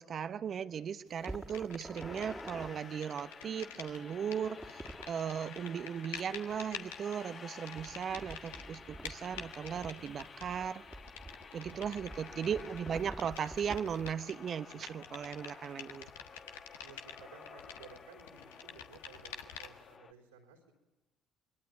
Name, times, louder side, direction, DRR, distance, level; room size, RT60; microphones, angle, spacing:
voice 1, 0.0-4.8 5.1-10.8 11.5-16.1, right 8 dB, 50° right, 13 dB, 0.9 m, -37 dB
sound 1, 1.2-2.6 2.9-19.9, left 7 dB, 80° left, 1.3 m, -49 dB
sound 2, 1.2-2.7 4.4-5.1 7.8-14.1, right 1 dB, 10° right, 2.2 m, -48 dB
sound 3, 1.9-20.1, left 5 dB, 45° left, 1.3 m, -52 dB
voice 2, 11.9-12.3 16.8-20.8, right 6 dB, 85° right, 3 dB, 4.1 m, -57 dB
26.0 x 22.5 x 9.3 m, 1.0 s
hypercardioid pair, 50°, 0 cm